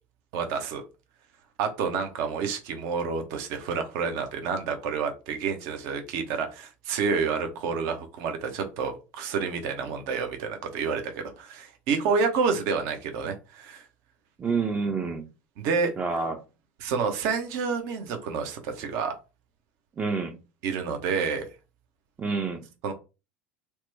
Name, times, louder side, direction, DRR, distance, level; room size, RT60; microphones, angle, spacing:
voice 1, 0.3-0.8 1.6-13.8 15.6-15.9 16.8-19.1 20.6-21.4 22.8-22.9, right 5 dB, 60° right, 0.7 m, -29 dB
voice 2, 14.4-15.3 16.0-16.4 20.0-20.4 22.2-22.7, right 4 dB, 25° right, 0.5 m, -28 dB
2.9 x 2.1 x 3.2 m
figure-of-eight pair, 70°, 6 cm